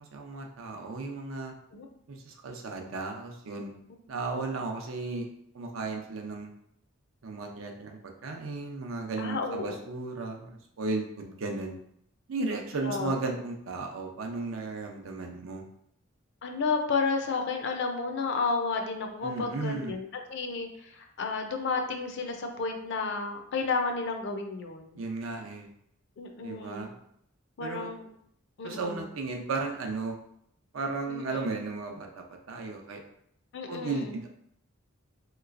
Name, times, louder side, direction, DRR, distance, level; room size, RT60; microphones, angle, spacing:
voice 1, 0.0-1.5 2.1-3.7 4.1-5.3 5.5-6.5 7.2-11.8 12.3-15.6 19.2-19.9 25.0-25.7 26.4-26.9 27.6-27.9 28.6-30.2 30.7-32.1 32.5-33.0 33.7-34.3, right 3 dB, 80° right, 2 dB, 0.5 m, -35 dB
voice 2, 9.2-9.7 12.8-13.4 16.4-25.0 26.2-26.9 27.6-28.1 28.6-29.1 31.1-31.5 33.5-34.2, left 4 dB, 60° left, 4 dB, 0.4 m, -32 dB
3.1 x 3.0 x 2.4 m, 0.72 s
head